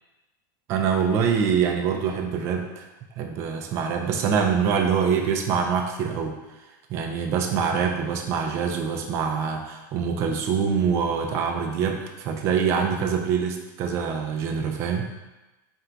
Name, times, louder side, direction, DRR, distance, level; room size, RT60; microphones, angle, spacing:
voice 1, 0.7-2.8 3.2-6.3 6.9-15.1, right 6 dB, 25° right, 3 dB, 0.3 m, -25 dB
4.4 x 2.3 x 3.8 m, 1.1 s
supercardioid pair, 175°, 11 cm